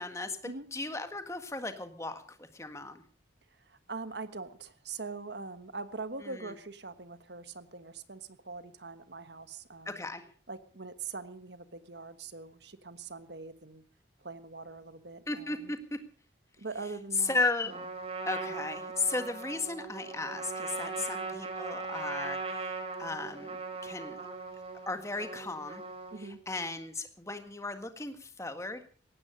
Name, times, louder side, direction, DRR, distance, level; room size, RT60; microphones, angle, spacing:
voice 1, 0.0-0.4 0.7-3.0 6.2-6.5 9.8-10.2 15.3-16.0 17.2-17.8 18.2-22.7 23.0-23.6 23.8-24.2 24.9-25.8 26.2-28.8, left 3 dB, 15° left, 8 dB, 1.7 m, -35 dB
voice 2, 3.6-10.0 10.5-13.8 14.2-15.7 16.6-17.8 21.0-21.2 26.1-26.4, right 4 dB, 65° right, 12 dB, 1.4 m, -43 dB
Trumpet, 17.7-26.4, right 4 dB, 30° right, 3.7 m, -39 dB
18.0 x 15.0 x 5.1 m, 0.40 s
head